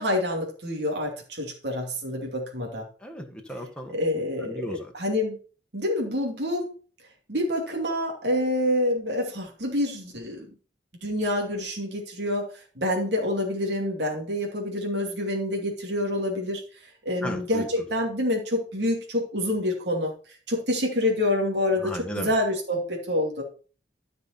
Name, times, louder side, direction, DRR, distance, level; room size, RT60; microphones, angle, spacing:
voice 1, 0.0-2.9 3.9-5.4 5.7-6.7 7.3-10.5 11.0-16.6 17.0-20.1 20.5-23.4, left 1 dB, 70° right, 0 dB, 2.6 m, -27 dB
voice 2, 3.0-4.0 4.4-4.9 17.2-17.8 21.8-22.3, equal, 5° left, 2 dB, 1.6 m, -35 dB
13.5 x 5.4 x 4.3 m, 0.39 s
head